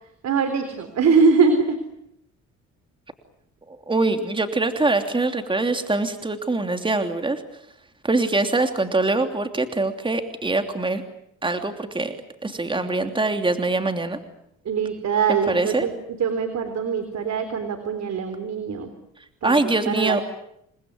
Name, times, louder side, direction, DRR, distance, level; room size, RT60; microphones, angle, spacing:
voice 1, 0.2-1.8 14.7-18.9 19.4-20.2, right 5 dB, 60° right, 8 dB, 3.7 m, -22 dB
voice 2, 3.7-7.4 8.0-11.0 11.4-12.1 12.4-14.2 15.5-15.9 19.4-20.2, right 2 dB, 15° right, 7 dB, 3.0 m, -23 dB
28.5 x 20.5 x 9.6 m, 0.78 s
cardioid pair, 90°, 30 cm